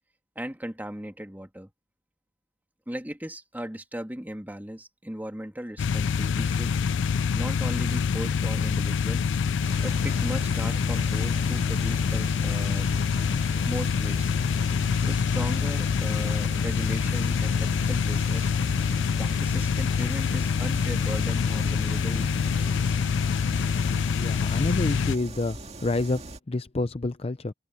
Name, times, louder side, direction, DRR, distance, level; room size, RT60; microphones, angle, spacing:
voice 1, 0.4-1.7 2.9-6.8 7.3-9.2 9.8-12.9 13.6-14.2 15.0-18.5 19.2-23.0, equal, 10° right, 2.3 m, -37 dB
sound 1, 5.8-25.2, left 6 dB, 85° left, 0.4 m, -25 dB
sound 2, 9.6-26.4, right 2 dB, 35° right, 2.1 m, -41 dB
voice 2, 24.1-27.5, left 2 dB, 35° left, 0.6 m, -29 dB
open air
head